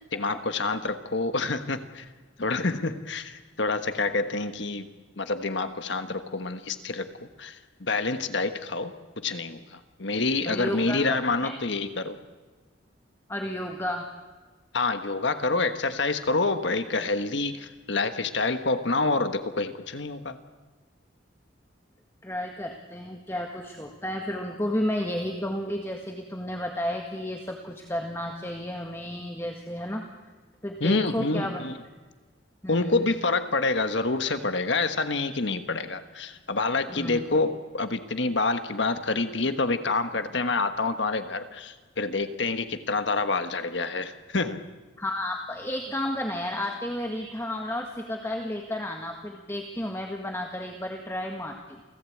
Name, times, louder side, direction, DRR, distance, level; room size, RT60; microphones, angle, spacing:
voice 1, 0.1-2.0 2.4-4.9 5.2-12.2 14.7-20.4 30.8-31.7 32.7-44.6, left 3 dB, 65° left, 9 dB, 1.4 m, -27 dB
voice 2, 10.4-11.5 13.3-14.1 22.2-30.0 30.6-31.6 32.6-33.1 36.9-37.2 45.0-51.8, left 1 dB, 15° left, 2 dB, 1.8 m, -32 dB
28.5 x 17.5 x 8.6 m, 1.3 s
head